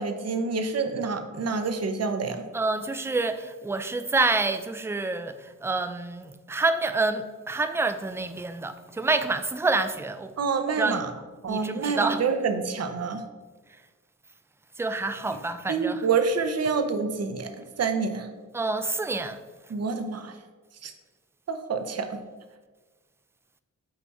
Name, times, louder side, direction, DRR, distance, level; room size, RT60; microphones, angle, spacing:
voice 1, 0.0-2.4 10.4-11.1 11.4-13.2 15.7-18.3 19.7-20.4 20.8-20.9 21.5-22.2, right 5 dB, 55° right, 0.7 m, -27 dB
voice 2, 2.5-10.3 10.8-11.0 11.5-12.2 14.8-16.1 18.5-19.4, right 3 dB, 10° right, 0.3 m, -27 dB
8.7 x 3.5 x 4.1 m
wide cardioid pair, 115°, 31 cm